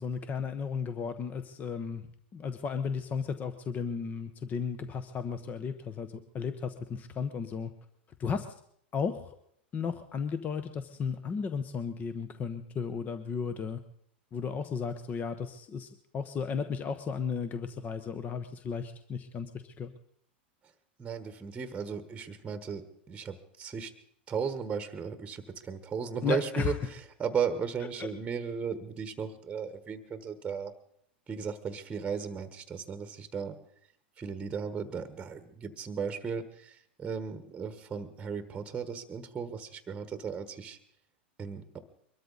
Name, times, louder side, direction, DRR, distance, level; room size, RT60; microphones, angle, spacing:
voice 1, 0.0-2.0 2.3-7.7 8.2-8.5 8.9-9.4 9.7-13.8 14.3-19.9 26.2-26.7 28.0-28.1, left 6 dB, 25° left, 10 dB, 1.0 m, -34 dB
voice 2, 21.0-23.9 24.3-30.7 31.3-33.6 34.2-40.8 41.4-41.8, right 6 dB, 20° right, 10 dB, 1.3 m, -36 dB
23.0 x 13.0 x 4.0 m, 0.67 s
hypercardioid pair, 115°, 6 cm